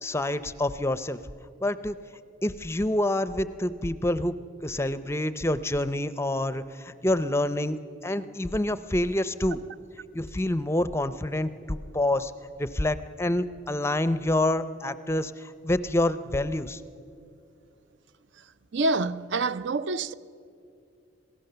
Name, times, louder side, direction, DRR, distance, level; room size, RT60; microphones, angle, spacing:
voice 1, 0.0-1.2 1.6-1.9 2.4-4.3 4.6-9.6 10.1-12.3 12.6-16.8, left 1 dB, 15° left, 0.5 m, -27 dB
voice 2, 18.7-20.1, right 3 dB, 65° right, 0.5 m, -26 dB
27.0 x 17.5 x 6.8 m
head